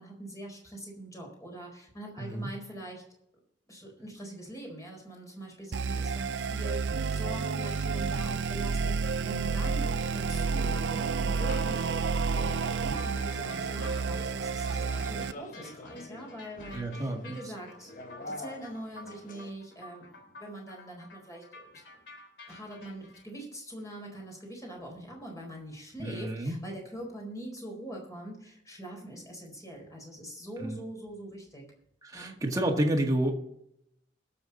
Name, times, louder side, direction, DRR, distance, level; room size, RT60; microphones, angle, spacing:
voice 1, 0.0-3.0 3.7-22.0 22.5-31.6 32.1-32.3, right 1 dB, 20° left, 0 dB, 4.4 m, -43 dB
voice 2, 2.2-2.5 16.7-17.4 26.0-26.6 30.6-30.8 32.0-33.3, right 1 dB, 20° right, 1 dB, 1.9 m, -29 dB
sound 1, 5.7-15.3, right 5 dB, 85° right, 0.5 m, -30 dB
sound 2, 9.6-19.5, left 2 dB, 45° left, 1.1 m, -46 dB
sound 3, 13.0-23.2, left 2 dB, 70° left, 3.3 m, -51 dB
21.0 x 7.1 x 4.1 m, 0.78 s
head